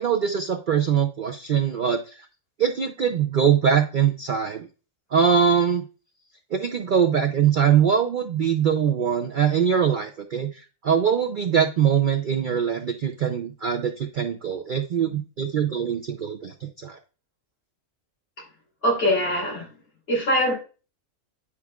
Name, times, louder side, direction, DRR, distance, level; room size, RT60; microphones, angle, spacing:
voice 1, 0.0-2.3 2.6-4.7 5.1-5.8 6.5-17.0, right 8 dB, 55° right, 5 dB, 0.5 m, -22 dB
voice 2, 18.8-19.7 20.1-20.5, equal, 45° left, -2 dB, 3.5 m, -22 dB
9.7 x 4.7 x 2.3 m, 0.34 s
omnidirectional pair, 1.4 m